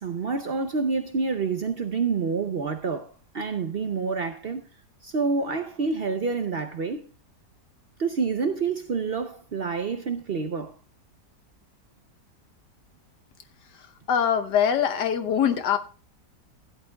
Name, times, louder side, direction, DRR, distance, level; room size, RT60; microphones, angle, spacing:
voice 1, 0.0-4.6 5.0-7.0 8.0-10.7, right 4 dB, 60° right, 0.6 m, -28 dB
voice 2, 14.1-15.8, left 8 dB, 80° left, 1.6 m, -23 dB
15.5 x 11.0 x 2.3 m
omnidirectional pair, 1.8 m